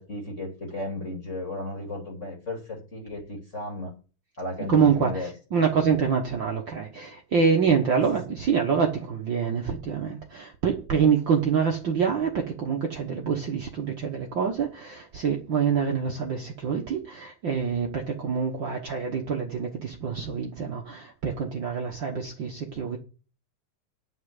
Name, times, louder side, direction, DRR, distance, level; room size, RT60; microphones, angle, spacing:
voice 1, 0.0-3.9 4.4-5.3 5.7-5.9 8.0-8.4, left 2 dB, 25° left, 2.0 m, -35 dB
voice 2, 4.7-23.0, right 6 dB, 85° right, 1.0 m, -26 dB
9.9 x 5.6 x 8.1 m
omnidirectional pair, 4.1 m